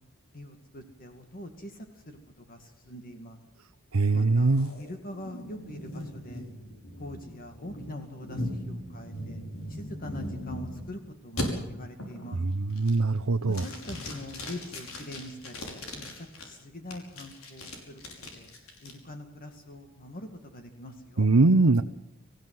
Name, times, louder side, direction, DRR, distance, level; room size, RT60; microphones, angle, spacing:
voice 1, 0.3-3.4 4.1-6.4 7.0-9.4 9.7-12.4 13.4-18.5 18.8-21.3, left 1 dB, 45° left, 6 dB, 2.2 m, -43 dB
voice 2, 3.9-4.7 12.6-13.6 21.2-21.8, right 3 dB, 90° right, 7 dB, 0.8 m, -22 dB
sound 1, 4.5-10.9 11.4-11.5 12.0-12.3 12.7-13.2 13.5-16.4 16.9-18.9, left 1 dB, 70° left, 5.7 m, -39 dB
25.5 x 15.5 x 7.8 m, 0.87 s
head